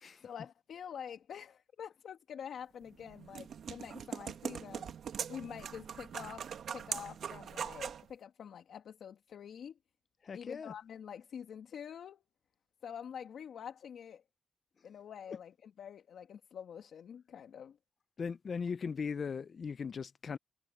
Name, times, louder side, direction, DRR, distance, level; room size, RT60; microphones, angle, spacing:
voice 1, 0.2-4.9 5.3-6.5 6.7-9.8 10.3-12.2 12.8-14.2 14.8-17.8, left 8 dB, 75° left, 2.1 m, -47 dB
sound 1, 2.8-8.1, right 8 dB, 70° right, 1.3 m, -42 dB
voice 2, 10.2-10.7 18.2-20.4, left 5 dB, 50° left, 0.6 m, -38 dB
cardioid pair, 85°, 0 cm